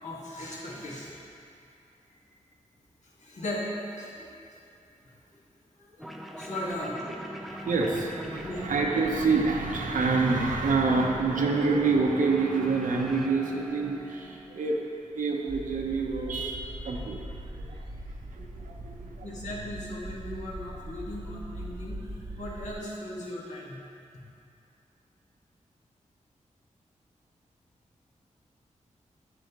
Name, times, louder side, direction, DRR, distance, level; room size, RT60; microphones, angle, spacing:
voice 1, 0.0-1.2 3.2-4.3 5.0-5.1 5.9-6.0 6.4-7.0 8.4-8.6 19.2-22.0 22.4-23.8, left 1 dB, 60° left, -5 dB, 1.8 m, -37 dB
sound 1, 6.0-15.0, equal, ahead, 0.6 m, -42 dB
voice 2, 7.3-14.8 15.1-17.2 17.5-17.8 18.3-19.3, right 4 dB, 85° right, 0 dB, 0.9 m, -27 dB
sound 2, 15.5-22.7, right 1 dB, 30° right, 0.9 m, -41 dB
8.8 x 7.7 x 3.0 m, 2.5 s
wide cardioid pair, 80°, 13 cm